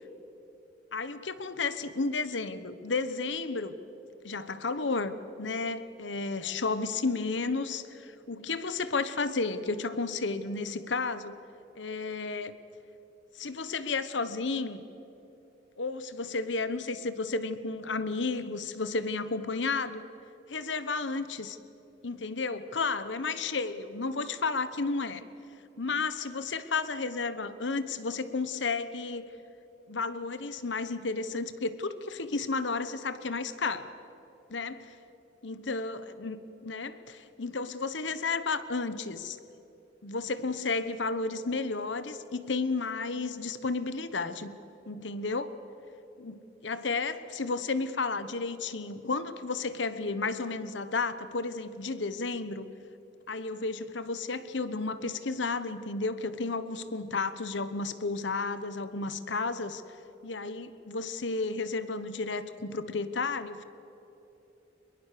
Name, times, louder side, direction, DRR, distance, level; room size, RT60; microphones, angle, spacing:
voice 1, 0.9-3.7 4.2-11.4 11.7-12.5 13.3-14.8 15.8-20.0 20.5-21.6 22.0-25.2 25.8-29.3 29.9-33.9 34.5-34.9 35.4-36.4 36.6-39.4 40.0-44.5 44.9-45.6 46.2-52.7 53.3-59.8 60.2-63.6, left 3 dB, 75° left, 13 dB, 1.1 m, -32 dB
23.5 x 22.0 x 6.8 m, 3.0 s
head